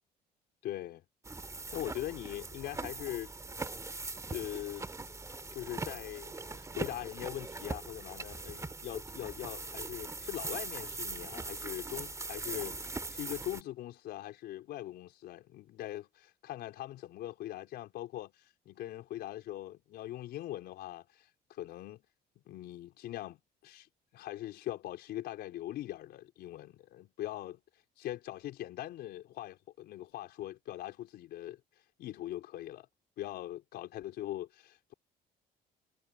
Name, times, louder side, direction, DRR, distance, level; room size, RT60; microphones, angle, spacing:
voice 1, 0.6-1.0 1.7-3.3 4.3-4.9 5.5-22.0 22.5-31.6 32.0-32.9 33.2-34.9, left 14 dB, 75° left, 4.5 m, -41 dB
sound 1, 1.2-13.6, right 3 dB, 20° right, 2.9 m, -41 dB
cardioid pair, 110°, 17 cm